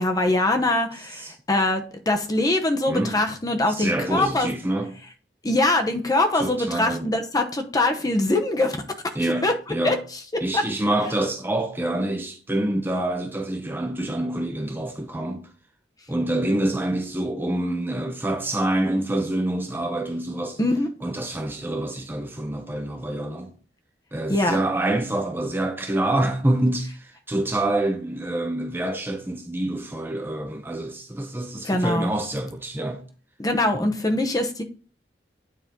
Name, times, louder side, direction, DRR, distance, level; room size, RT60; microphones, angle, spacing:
voice 1, 0.0-4.5 5.4-8.8 9.4-9.5 9.8-10.0 10.5-10.6 20.6-20.9 24.3-24.6 31.6-32.1 33.4-34.6, left 2 dB, 20° left, 0.9 m, -23 dB
voice 2, 2.9-3.2 3.7-5.0 6.3-7.2 9.1-10.0 10.4-15.5 16.1-20.6 21.0-23.5 24.1-33.0 33.7-33.9, right 1 dB, 10° right, 0.6 m, -26 dB
9.3 x 4.4 x 3.7 m
head